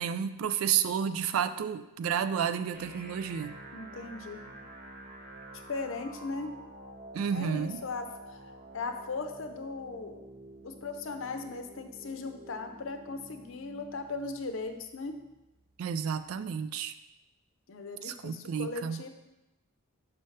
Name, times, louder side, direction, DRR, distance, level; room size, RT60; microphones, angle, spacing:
voice 1, 0.0-3.6 7.1-7.8 15.8-16.9 18.0-19.0, right 8 dB, 80° right, 12 dB, 0.3 m, -31 dB
sound 1, 2.7-16.7, right 1 dB, 45° right, 0.6 m, -49 dB
voice 2, 3.7-4.5 5.5-6.5 7.3-8.4 8.7-10.2 10.6-15.2 17.7-19.1, left 3 dB, 65° left, 6 dB, 0.6 m, -38 dB
5.6 x 5.5 x 3.2 m, 0.96 s
head